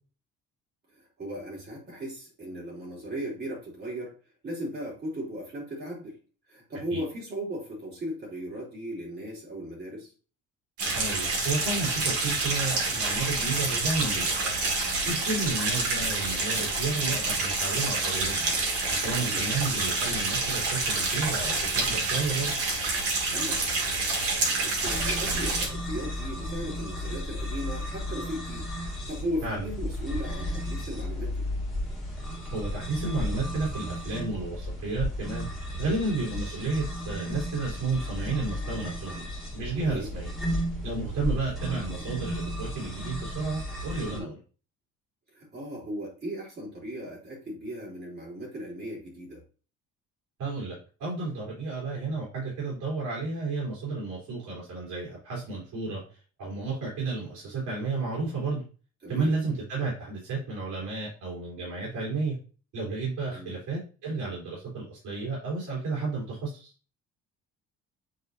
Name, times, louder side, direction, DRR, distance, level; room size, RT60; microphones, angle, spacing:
voice 1, 0.9-4.1 4.4-6.2 6.5-10.1 19.2-19.5 23.3-23.7 24.4-31.5 39.9-40.1 44.1-44.3 45.3-49.4 59.0-59.4 63.3-63.6, equal, 30° right, -3 dB, 3.1 m, -37 dB
sound 1, 10.8-25.7, right 3 dB, 45° right, 2.1 m, -28 dB
voice 2, 11.0-14.6 15.1-18.5 18.9-22.5 29.4-29.7 32.5-35.5 35.8-40.3 40.8-44.4 50.4-58.6 59.1-62.4 62.7-66.7, right 3 dB, 70° right, -5 dB, 3.5 m, -32 dB
sound 2, 24.8-44.2, equal, ahead, 2.1 m, -34 dB
9.2 x 4.0 x 2.7 m, 0.36 s
cardioid pair, 175°, 32 cm